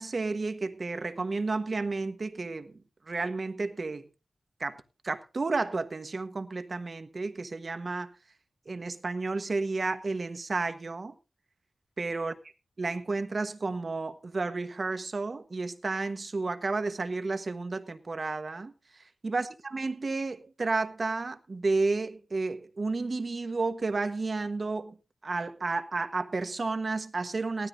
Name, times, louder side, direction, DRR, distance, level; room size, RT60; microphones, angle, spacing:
voice 1, 0.0-2.8 3.1-4.1 4.6-8.1 8.7-11.1 12.0-12.3 12.8-18.7 19.2-25.0 25.2-27.7, right 3 dB, 45° right, 1.2 m, -32 dB
18.5 x 13.0 x 2.7 m
wide cardioid pair, 120°, 0 cm